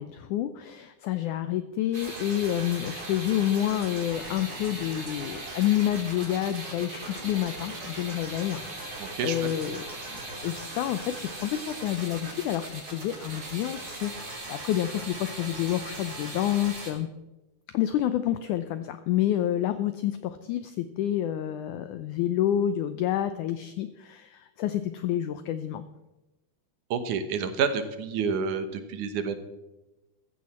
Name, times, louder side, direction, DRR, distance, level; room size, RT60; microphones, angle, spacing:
voice 1, 0.0-17.1 17.7-25.8, left 12 dB, 85° left, 11 dB, 1.8 m, -29 dB
sound 1, 1.9-16.9, right 2 dB, 25° right, 3.0 m, -39 dB
voice 2, 9.0-9.5 26.9-29.4, right 6 dB, 65° right, 9 dB, 2.3 m, -29 dB
15.0 x 14.0 x 4.3 m, 1.0 s
omnidirectional pair, 4.3 m